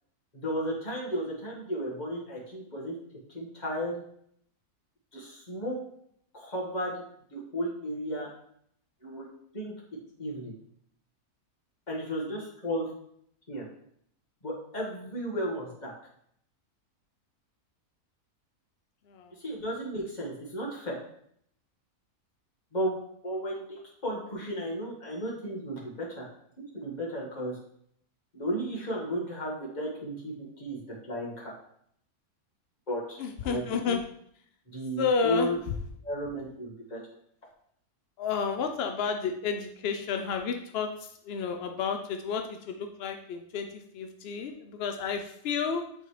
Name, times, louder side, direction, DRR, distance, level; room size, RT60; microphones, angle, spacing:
voice 1, 0.3-2.9 3.3-4.0 5.1-5.8 6.3-7.0 7.3-8.3 9.0-9.3 9.5-9.7 10.2-10.5 11.9-12.9 13.5-13.7 14.4-15.9 19.4-21.0 22.7-22.9 23.2-26.3 26.7-27.6 28.3-31.5 32.9-34.0 34.7-35.6 36.0-37.0, equal, 30° left, -4 dB, 1.7 m, -34 dB
voice 2, 33.2-34.0 35.0-35.5 38.2-45.8, left 5 dB, 80° left, 5 dB, 0.5 m, -31 dB
8.5 x 3.9 x 3.2 m, 0.69 s
omnidirectional pair, 1.6 m